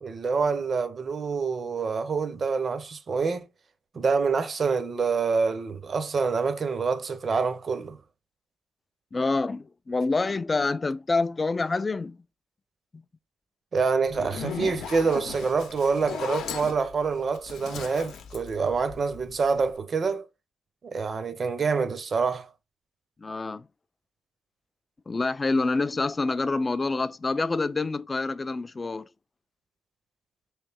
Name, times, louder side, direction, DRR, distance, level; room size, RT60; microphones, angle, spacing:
voice 1, 0.0-3.5 3.9-8.0 13.7-20.3 20.8-22.5, right 5 dB, 40° right, 0.6 m, -26 dB
voice 2, 9.1-12.2 12.9-13.0 23.2-23.7 25.1-29.1, left 3 dB, 25° left, 0.3 m, -27 dB
Zipper (clothing), 14.1-19.3, left 7 dB, 75° left, 0.7 m, -37 dB
3.1 x 3.1 x 3.4 m
cardioid pair, 90°, 0 cm